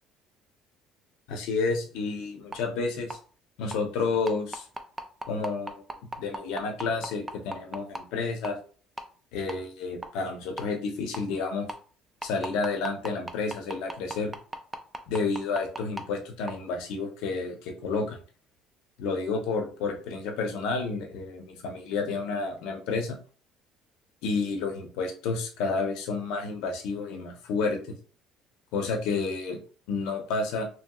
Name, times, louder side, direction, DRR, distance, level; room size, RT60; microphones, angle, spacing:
voice 1, 1.3-3.2 3.6-4.7 5.3-5.8 6.2-8.5 9.3-11.7 12.2-14.3 15.1-18.2 19.0-23.2 24.2-28.0 28.7-29.6 29.9-30.6, left 4 dB, 80° left, 3 dB, 0.7 m, -30 dB
sound 1, 2.5-2.6 3.1-3.2 3.7-3.8 4.3-8.0 8.4-8.6 9.0-9.1 9.5-9.6 10.0-10.1 10.6-10.7 11.1-11.2 11.7-11.8 12.2-16.0 16.5-16.6, right 2 dB, 10° right, 0.3 m, -34 dB
2.9 x 2.9 x 2.3 m, 0.40 s
cardioid pair, 155°, 0 cm